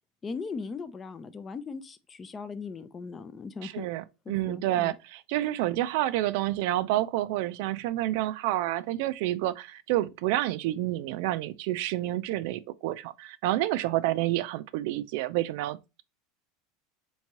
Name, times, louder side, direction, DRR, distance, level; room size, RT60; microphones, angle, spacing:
voice 1, 0.2-3.9 4.3-4.9, left 4 dB, 25° left, 0.4 m, -38 dB
voice 2, 3.6-16.0, right 15 dB, 70° right, 0.3 m, -29 dB
3.5 x 3.0 x 2.8 m
supercardioid pair, 120°, 0 cm